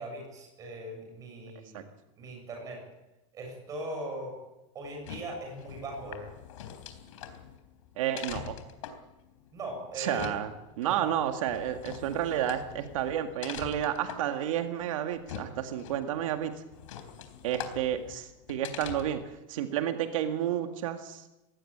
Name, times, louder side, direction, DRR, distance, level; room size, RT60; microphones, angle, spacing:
voice 1, 0.0-1.9 2.2-2.8 3.3-4.3 4.7-6.3 9.5-10.3 10.8-11.1, right 1 dB, 20° right, 2 dB, 7.6 m, -39 dB
sound 1, 4.8-19.3, left 9 dB, 90° left, 3.8 m, -44 dB
voice 2, 8.0-8.6 10.0-10.5 10.8-16.5 17.4-19.2 19.5-21.2, right 10 dB, 90° right, 6 dB, 2.0 m, -31 dB
20.0 x 18.0 x 8.7 m, 0.98 s
supercardioid pair, 180°, 16 cm